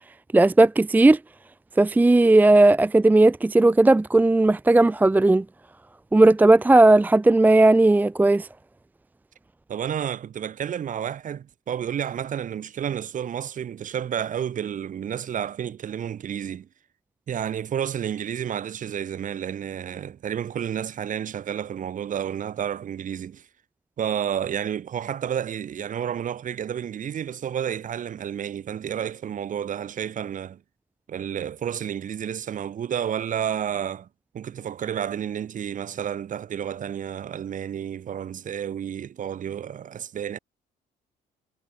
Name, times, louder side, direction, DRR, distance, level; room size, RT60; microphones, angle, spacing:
voice 1, 0.3-1.2 1.8-5.4 6.1-8.5, right 2 dB, 10° right, 0.6 m, -16 dB
voice 2, 9.7-16.7 17.3-23.5 24.0-30.6 31.1-34.1 34.3-40.4, right 9 dB, 50° right, 7.2 m, -30 dB
cardioid pair, 110°, 17 cm